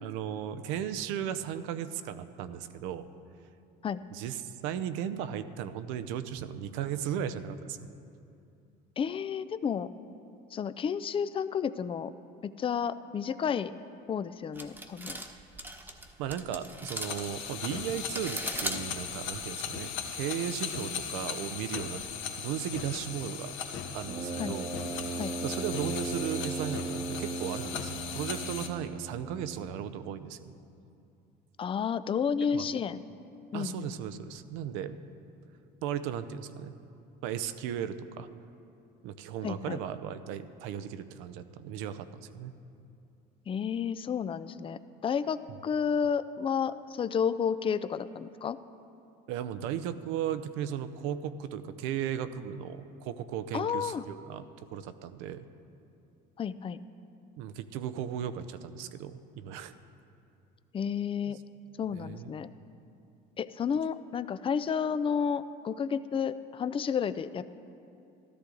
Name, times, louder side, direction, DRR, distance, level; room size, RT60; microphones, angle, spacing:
voice 1, 0.0-3.1 4.1-7.9 16.2-22.1 22.4-23.6 23.9-24.7 25.4-30.5 32.5-32.6 33.5-35.0 35.8-36.7 37.2-38.3 39.0-42.5 49.3-55.5 57.4-59.7 61.3-61.4 61.9-62.3, right 9 dB, 75° right, 12 dB, 0.7 m, -36 dB
voice 2, 9.0-9.9 10.5-12.1 12.4-13.7 14.1-15.2 24.4-24.6 25.2-25.3 31.6-33.0 33.5-33.9 39.4-39.8 43.5-48.6 53.5-54.0 56.4-56.8 60.7-61.4 61.8-62.5 63.4-67.4, left 7 dB, 25° left, 14 dB, 0.5 m, -31 dB
sound 1, 14.6-19.5, right 1 dB, 10° right, 1.1 m, -39 dB
sound 2, 16.9-28.7, left 7 dB, 65° left, 1.3 m, -38 dB
Brass instrument, 24.0-29.9, right 3 dB, 30° right, 1.1 m, -37 dB
13.5 x 13.0 x 3.9 m, 2.6 s
supercardioid pair, 85°, 21 cm